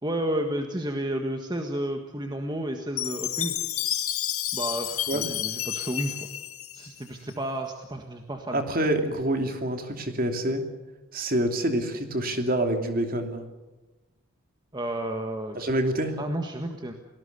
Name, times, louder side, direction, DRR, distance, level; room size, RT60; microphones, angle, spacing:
voice 1, 0.0-3.6 4.5-6.3 6.7-8.6 14.7-15.6 16.2-16.9, right 1 dB, 20° right, 4 dB, 1.6 m, -31 dB
Chime, 3.0-7.3, left 12 dB, 80° left, 1.7 m, -30 dB
voice 2, 8.5-10.6 11.1-13.4 15.5-16.2, right 1 dB, 40° right, 5 dB, 2.8 m, -27 dB
29.5 x 19.0 x 6.9 m, 1.1 s
head